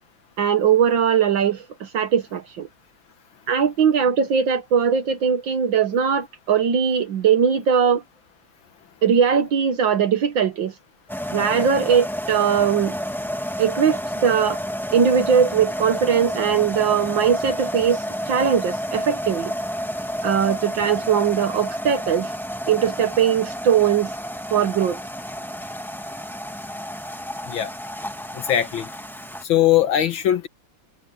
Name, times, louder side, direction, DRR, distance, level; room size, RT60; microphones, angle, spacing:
voice 1, 0.4-2.7 3.5-8.0 9.0-10.7 11.3-12.9 13.6-14.6 14.9-19.5 20.2-22.3 22.7-24.1 24.5-25.0, right 7 dB, 70° right, 1.9 m, -20 dB
sound 1, 11.1-29.4, equal, ahead, 1.4 m, -30 dB
voice 2, 28.5-28.9 29.5-30.5, left 11 dB, 75° left, 1.9 m, -19 dB
omnidirectional pair, 2.2 m